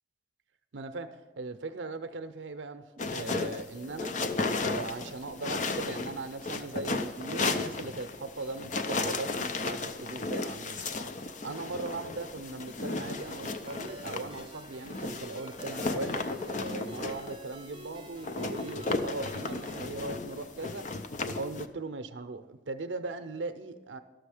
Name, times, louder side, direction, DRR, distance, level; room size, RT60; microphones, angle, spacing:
voice 1, 0.7-1.1 1.4-4.1 4.6-10.8 11.2-20.9 21.3-24.0, right 3 dB, 85° right, 0.6 m, -39 dB
sound 1, 3.0-21.7, left 3 dB, 40° left, 0.5 m, -34 dB
Ringtone, 13.0-19.9, right 3 dB, 25° right, 0.4 m, -50 dB
12.5 x 6.3 x 4.9 m
head